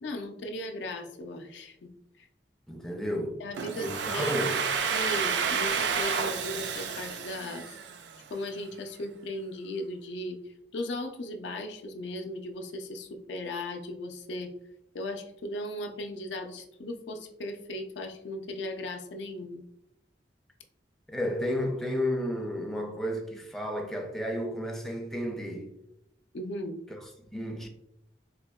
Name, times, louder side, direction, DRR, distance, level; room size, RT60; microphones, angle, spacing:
voice 1, 0.0-1.9 2.2-2.3 3.4-4.5 4.9-7.8 8.3-10.4 10.7-14.5 14.9-19.6 26.3-26.8, left 1 dB, 80° left, 0.4 m, -37 dB
voice 2, 2.7-3.4 3.8-4.6 21.1-25.7 26.9-27.7, equal, ahead, 0.4 m, -32 dB
Domestic sounds home sounds, 3.6-8.3, right 6 dB, 75° right, 0.4 m, -30 dB
4.1 x 2.7 x 2.2 m
head